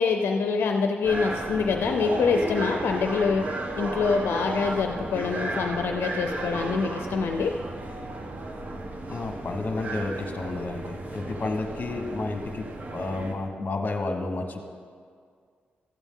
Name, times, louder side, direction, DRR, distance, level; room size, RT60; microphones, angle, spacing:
voice 1, 0.0-3.5 3.8-7.5, left 5 dB, 80° left, 5 dB, 0.5 m, -25 dB
sound 1, 1.0-13.3, right 2 dB, 45° right, 1.1 m, -34 dB
voice 2, 9.1-12.6 12.9-14.6, left 2 dB, 45° left, 4 dB, 1.2 m, -31 dB
13.5 x 8.1 x 3.7 m, 2.1 s
cardioid pair, 75°, 4 cm